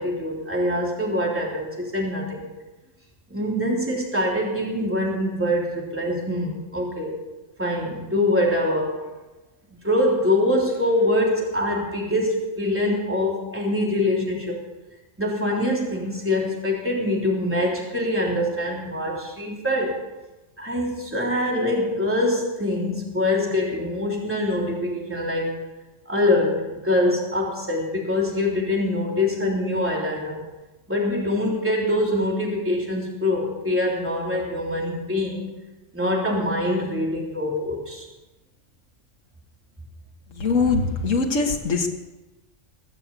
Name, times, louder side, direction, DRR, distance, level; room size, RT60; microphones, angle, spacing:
voice 1, 0.0-2.4 3.3-7.1 7.6-9.0 9.8-14.6 15.2-19.9 20.6-25.6 26.0-30.4 30.9-35.5 35.9-38.0, left 1 dB, 10° right, -2 dB, 3.4 m, -24 dB
voice 2, 40.4-41.9, left 4 dB, 85° left, 3 dB, 1.8 m, -22 dB
21.5 x 7.5 x 8.3 m, 1.1 s
omnidirectional pair, 1.3 m